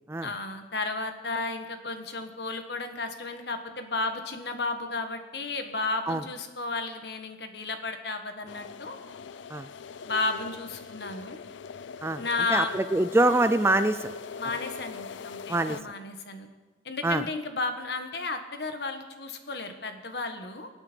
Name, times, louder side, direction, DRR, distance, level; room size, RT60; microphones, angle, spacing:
voice 1, 0.2-9.0 10.0-11.4 12.2-12.8 14.4-16.5 16.8-20.7, left 3 dB, 60° left, 7 dB, 1.4 m, -33 dB
sound 1, 8.5-15.8, left 5 dB, 75° left, 0.4 m, -41 dB
voice 2, 12.5-14.1 15.5-15.8 17.0-17.2, right 2 dB, 15° right, 11 dB, 0.3 m, -24 dB
24.5 x 8.7 x 4.5 m, 1.3 s
head